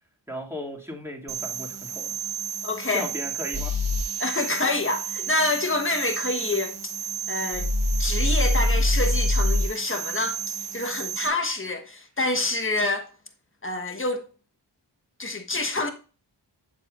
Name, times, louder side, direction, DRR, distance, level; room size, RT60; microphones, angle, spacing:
voice 1, 0.3-2.1 2.9-3.7, left 1 dB, 5° right, 2.4 m, -36 dB
sound 1, 1.3-11.3, right 9 dB, 60° right, 0.8 m, -33 dB
voice 2, 2.6-3.1 4.2-6.7 7.3-7.7 8.0-13.1 13.6-14.2 15.2-15.9, left 2 dB, 30° left, 1.3 m, -27 dB
sound 2, 3.5-4.1 7.5-9.7, left 2 dB, 35° right, 1.7 m, -23 dB
7.4 x 7.4 x 2.5 m
wide cardioid pair, 50°, 44 cm